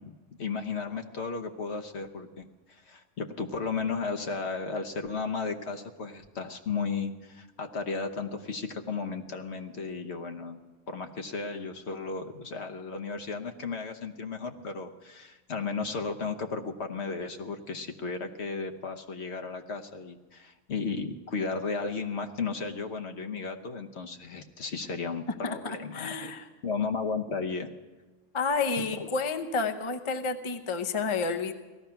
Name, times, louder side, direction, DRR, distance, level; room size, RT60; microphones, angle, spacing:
voice 1, 0.0-10.6 10.9-26.3 26.6-27.7 29.0-29.1, left 4 dB, 60° left, 5 dB, 1.2 m, -34 dB
voice 2, 25.4-26.5 28.3-31.5, left 4 dB, 30° left, 7 dB, 0.7 m, -30 dB
17.5 x 13.5 x 5.8 m, 1.2 s
omnidirectional pair, 1.3 m